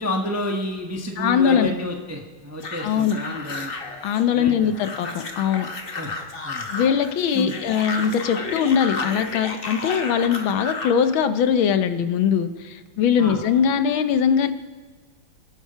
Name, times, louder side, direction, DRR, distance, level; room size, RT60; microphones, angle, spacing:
voice 1, 0.0-3.7 4.3-4.7 5.9-6.1 6.4-6.7 7.3-7.5 13.2-13.4, left 1 dB, 10° right, 2 dB, 0.8 m, -30 dB
voice 2, 1.2-1.7 2.8-3.2 4.0-5.7 6.7-14.5, left 7 dB, 70° left, 9 dB, 1.5 m, -21 dB
sound 1, 2.6-11.0, left 3 dB, 35° left, 1.0 m, -33 dB
26.5 x 9.1 x 5.7 m, 1.4 s
omnidirectional pair, 2.4 m